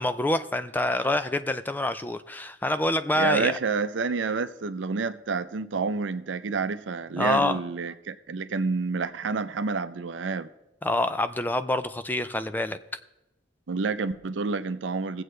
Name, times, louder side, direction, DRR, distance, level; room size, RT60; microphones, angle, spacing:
voice 1, 0.0-3.6 7.1-7.6 10.8-12.8, left 1 dB, 10° left, 0.4 m, -26 dB
voice 2, 3.1-10.5 13.7-15.2, right 4 dB, 75° right, 0.6 m, -29 dB
20.5 x 7.8 x 3.2 m
head